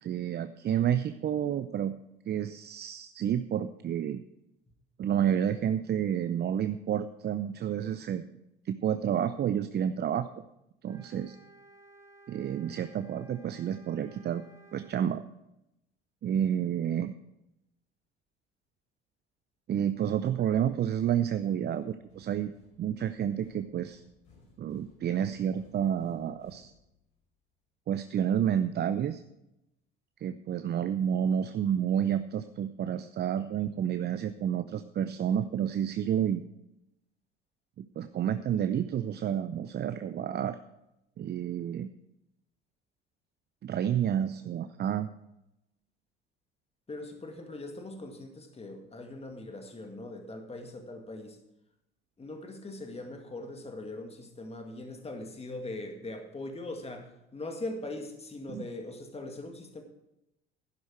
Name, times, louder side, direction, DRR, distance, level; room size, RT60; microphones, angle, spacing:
voice 1, 0.0-1.9 2.3-4.2 5.0-8.3 8.7-10.4 10.8-11.4 12.3-14.4 14.7-15.2 16.2-17.1 19.7-22.5 22.8-24.0 24.6-26.7 27.9-29.2 30.2-36.4 37.8-40.6 41.2-41.9 43.6-45.1 58.5-58.6, right 9 dB, 35° right, 11 dB, 0.6 m, -30 dB
sound 1, 10.8-15.0, right 2 dB, 10° right, 2.1 m, -56 dB
sound 2, 21.2-27.2, left 3 dB, 70° left, 5.4 m, -60 dB
voice 2, 46.9-51.4 52.2-59.8, left 2 dB, 20° left, 5 dB, 2.1 m, -41 dB
11.5 x 11.0 x 4.6 m, 0.87 s
hypercardioid pair, 60°, 30 cm